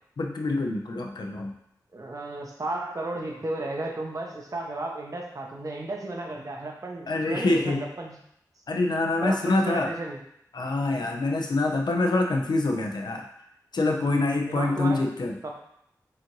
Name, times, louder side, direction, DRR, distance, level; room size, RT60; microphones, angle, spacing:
voice 1, 0.2-1.6 7.1-7.9 8.7-9.9 10.5-13.3 13.7-15.4, left 2 dB, 75° left, 2 dB, 0.6 m, -25 dB
voice 2, 1.9-8.2 9.2-10.2 14.5-15.1 15.4-15.5, right 2 dB, 50° right, 0 dB, 0.8 m, -33 dB
4.9 x 2.6 x 3.0 m, 0.73 s
cardioid pair, 45°, 7 cm